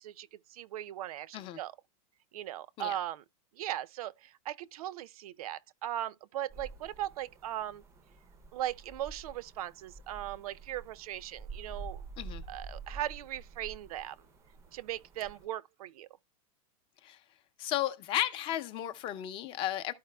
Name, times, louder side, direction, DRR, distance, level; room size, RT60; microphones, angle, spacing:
voice 1, 0.0-1.7 2.3-3.2 3.6-7.8 8.5-12.0 12.5-14.2 14.7-16.1, right 12 dB, 75° right, 0.5 m, -38 dB
sound 1, 6.5-15.5, right 4 dB, 15° right, 0.5 m, -48 dB
voice 2, 17.6-19.9, left 12 dB, 25° left, 0.6 m, -34 dB
13.0 x 4.7 x 2.2 m
supercardioid pair, 160°, 19 cm